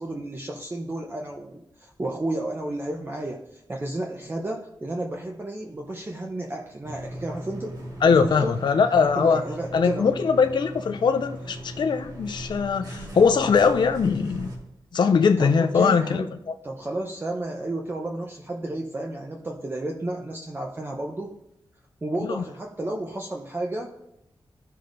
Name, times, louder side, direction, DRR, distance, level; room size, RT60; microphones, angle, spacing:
voice 1, 0.0-7.8 8.1-8.6 9.2-10.1 15.4-16.3 16.6-21.3 22.0-23.9, right 1 dB, 25° right, 1 dB, 0.7 m, -32 dB
sound 1, 6.8-14.6, equal, 45° right, 1.7 m, -38 dB
voice 2, 8.0-9.4 9.7-14.5 14.9-16.5 22.3-22.4, left 5 dB, 60° left, 7 dB, 0.4 m, -21 dB
14.5 x 5.5 x 2.6 m, 0.84 s
wide cardioid pair, 105°, 9 cm